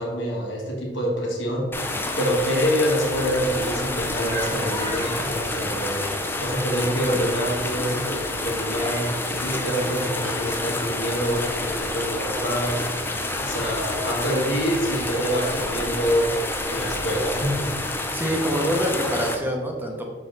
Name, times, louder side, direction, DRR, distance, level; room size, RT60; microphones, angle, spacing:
voice 1, 0.0-12.8 13.4-16.4 16.7-17.6, equal, 80° left, -1 dB, 1.6 m, -26 dB
sound 1, 1.7-19.4, left 2 dB, 10° left, 0.5 m, -28 dB
sound 2, 3.5-17.8, equal, 30° left, 1.6 m, -41 dB
voice 2, 18.1-20.1, equal, 10° right, 1 dB, 0.8 m, -25 dB
6.4 x 4.5 x 3.9 m, 1.5 s
head